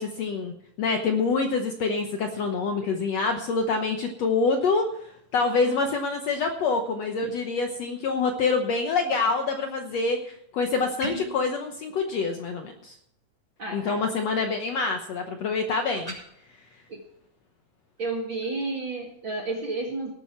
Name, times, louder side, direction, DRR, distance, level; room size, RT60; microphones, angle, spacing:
voice 1, 0.0-12.9 13.7-16.1, left 4 dB, 70° left, 4 dB, 1.7 m, -26 dB
sound 1, 11.0-11.4 16.0-16.2, right 1 dB, 10° right, 4.1 m, -35 dB
voice 2, 13.6-14.0 16.9-17.0 18.0-20.1, right 3 dB, 45° right, 1 dB, 1.8 m, -31 dB
18.5 x 9.0 x 4.4 m, 0.76 s
omnidirectional pair, 4.1 m